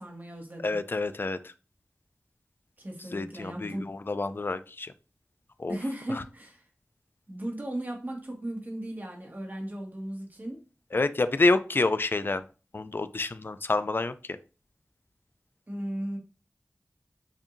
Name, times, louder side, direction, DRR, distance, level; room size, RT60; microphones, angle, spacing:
voice 1, 0.0-0.8 2.8-3.9 5.7-6.6 7.3-10.6 15.7-16.2, right 1 dB, 40° right, 0 dB, 1.6 m, -36 dB
voice 2, 0.6-1.4 3.1-4.9 5.6-5.8 10.9-12.4 12.7-14.1, left 3 dB, 45° left, 11 dB, 0.4 m, -27 dB
7.1 x 2.7 x 2.6 m, 0.34 s
wide cardioid pair, 60°, 5 cm